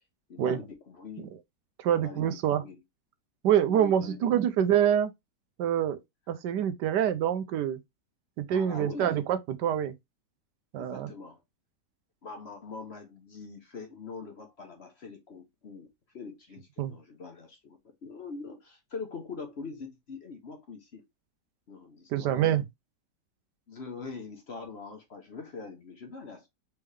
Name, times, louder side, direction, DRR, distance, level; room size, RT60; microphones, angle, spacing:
voice 1, 0.3-1.3 1.9-2.8 3.7-4.3 8.5-9.2 10.8-11.4 12.2-15.9 16.1-21.0 21.7-22.5 23.7-26.5, left 4 dB, 45° left, 1.0 m, -43 dB
voice 2, 1.8-2.6 3.4-5.1 5.6-6.0 6.3-7.8 8.4-9.9 10.7-11.1 16.8-17.0 22.1-22.6, right 10 dB, 80° right, 1.2 m, -26 dB
4.4 x 3.5 x 3.2 m
omnidirectional pair, 1.9 m